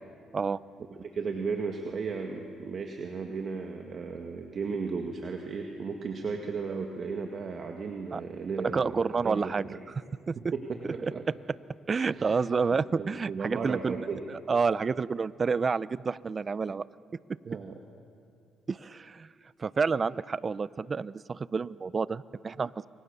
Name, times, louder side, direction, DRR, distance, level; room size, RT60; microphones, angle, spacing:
voice 1, 1.0-9.8 10.4-11.2 12.1-12.4 12.7-14.2 17.5-17.8, right 5 dB, 50° right, 3 dB, 2.0 m, -35 dB
voice 2, 8.6-9.6 10.3-10.4 10.8-11.1 11.9-16.9 18.7-19.3 19.6-22.9, right 5 dB, 35° right, 19 dB, 0.5 m, -29 dB
29.0 x 24.0 x 6.9 m, 2.5 s
cardioid pair, 90°, 0 cm